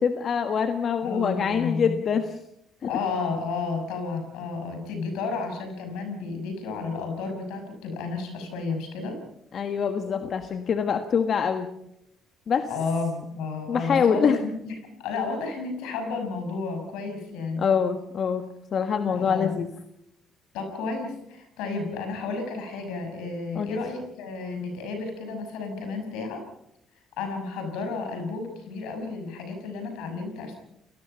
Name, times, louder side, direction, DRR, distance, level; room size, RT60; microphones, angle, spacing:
voice 1, 0.0-2.4 2.8-2.9 9.5-11.7 12.5-12.7 13.7-14.4 17.6-18.4 18.7-19.7 23.5-23.8, left 6 dB, 55° left, 8 dB, 1.5 m, -24 dB
voice 2, 1.0-2.0 2.8-9.2 12.7-14.7 15.0-17.6 19.1-19.6 20.5-26.4 27.2-30.6, left 4 dB, 80° left, 5 dB, 6.3 m, -32 dB
29.5 x 19.0 x 5.7 m, 0.79 s
supercardioid pair, 65°, 0 cm